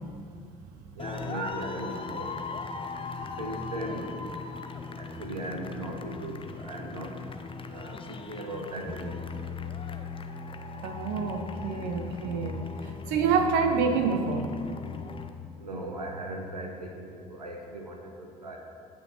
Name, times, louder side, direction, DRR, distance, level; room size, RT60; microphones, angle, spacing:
sound 1, 1.0-15.3, left 5 dB, 25° left, 1.0 m, -38 dB
voice 1, 1.0-2.4 3.4-4.3 5.0-7.2 7.7-9.4 15.6-18.6, right 1 dB, 90° right, 2 dB, 1.1 m, -38 dB
voice 2, 10.8-14.5, right 5 dB, 60° right, 6 dB, 0.9 m, -28 dB
15.5 x 6.5 x 6.0 m, 2.5 s
figure-of-eight pair, 50°, 20 cm